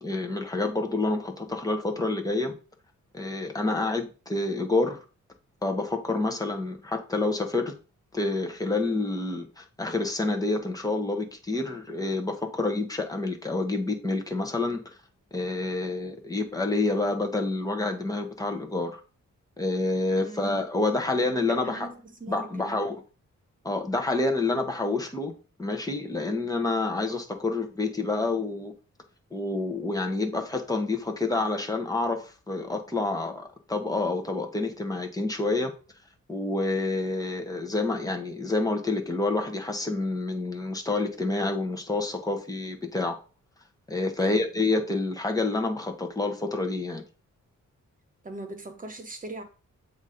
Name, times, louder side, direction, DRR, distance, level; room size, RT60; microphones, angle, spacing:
voice 1, 0.0-2.5 3.1-5.0 5.6-7.7 8.1-14.9 15.3-19.0 19.6-21.9 22.3-23.0 23.6-25.3 25.6-28.7 29.3-35.7 36.3-43.2 43.9-47.0, left 2 dB, 10° left, 0.9 m, -28 dB
voice 2, 20.2-20.7 21.2-22.8 44.2-44.5 48.2-49.4, right 2 dB, 25° right, 1.1 m, -41 dB
7.2 x 2.7 x 4.9 m
wide cardioid pair, 165°, 30 cm